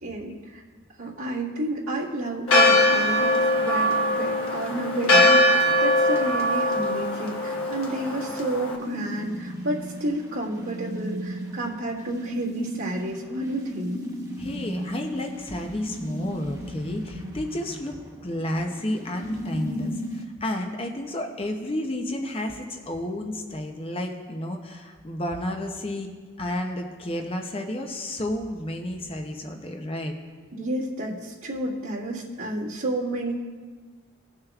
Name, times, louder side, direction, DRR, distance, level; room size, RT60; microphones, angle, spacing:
voice 1, 0.0-0.6 1.0-14.0 17.1-17.3 30.5-33.3, right 1 dB, 80° right, -6 dB, 1.8 m, -31 dB
Church bell, 2.5-8.8, left 1 dB, 75° left, 1.3 m, -21 dB
sound 1, 8.8-20.2, equal, 15° right, 0.9 m, -36 dB
voice 2, 14.4-18.0 18.2-26.1 26.4-30.1, left 1 dB, 25° left, 3 dB, 0.6 m, -31 dB
18.0 x 6.5 x 2.4 m, 1.5 s
head